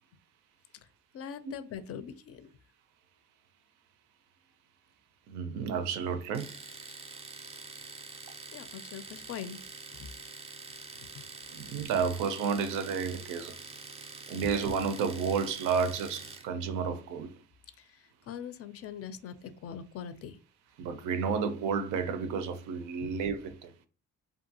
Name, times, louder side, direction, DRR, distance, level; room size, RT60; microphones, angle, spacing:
voice 1, 1.1-2.5 8.5-9.6 10.0-10.1 11.0-11.3 14.4-14.5 17.8-20.4 23.0-23.1, left 8 dB, 50° left, 0.4 m, -42 dB
voice 2, 5.3-6.6 11.5-13.6 14.3-17.3 20.8-23.7, right 6 dB, 90° right, 0.5 m, -31 dB
Domestic sounds home sounds, 6.3-16.5, right 4 dB, 20° right, 0.4 m, -46 dB
2.6 x 2.3 x 2.7 m
cardioid pair, 90°, 30 cm